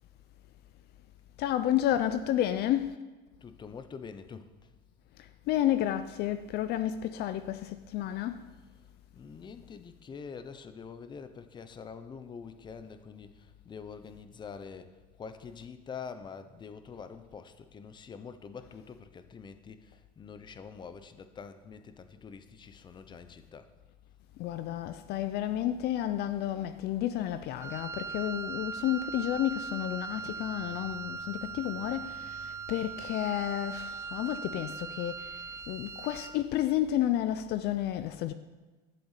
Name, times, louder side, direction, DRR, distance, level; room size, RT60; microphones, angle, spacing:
voice 1, 1.4-3.0 5.5-8.4 24.4-35.3 35.7-38.3, left 12 dB, 55° left, 0.6 m, -31 dB
voice 2, 3.4-4.7 8.5-23.7, left 6 dB, 25° left, 0.8 m, -46 dB
Wind instrument woodwind instrument, 27.6-36.5, right 5 dB, 15° right, 0.4 m, -40 dB
12.0 x 6.8 x 8.3 m
cardioid pair, 140°, 20 cm